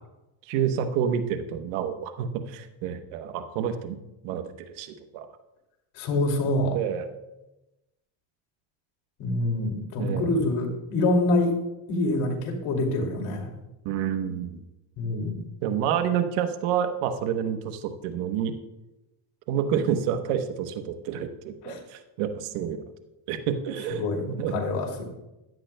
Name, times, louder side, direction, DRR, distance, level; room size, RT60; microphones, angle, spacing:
voice 1, 0.5-4.0 4.2-4.4 4.7-5.3 6.7-7.1 10.0-10.3 13.8-14.6 15.6-18.5 19.5-22.8 23.3-24.7 25.0-25.1, right 8 dB, 90° right, 8 dB, 1.1 m, -28 dB
voice 2, 5.9-6.8 9.2-11.6 11.9-13.5 15.0-15.5 21.6-21.8 23.9-25.0, left 2 dB, 85° left, 1 dB, 2.7 m, -26 dB
15.5 x 11.5 x 2.2 m, 0.97 s
cardioid pair, 105°, 50 cm